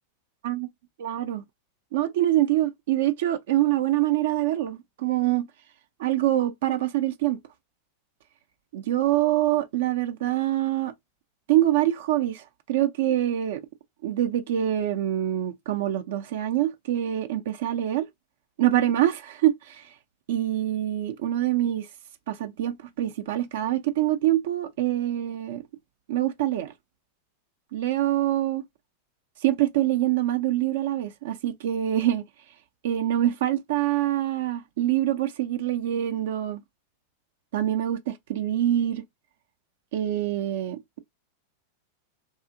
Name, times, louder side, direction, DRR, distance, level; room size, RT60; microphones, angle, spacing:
voice 1, 1.0-1.4 1.9-5.5 6.0-7.4 8.7-10.9 11.5-13.6 14.0-18.1 18.6-19.9 20.3-21.9 22.3-25.6 26.1-26.7 27.7-28.6 29.4-32.2 32.8-36.6 37.5-39.0 39.9-41.0, right 13 dB, 55° right, 0.3 m, -25 dB
2.8 x 2.4 x 2.4 m
figure-of-eight pair, 90°, 0 cm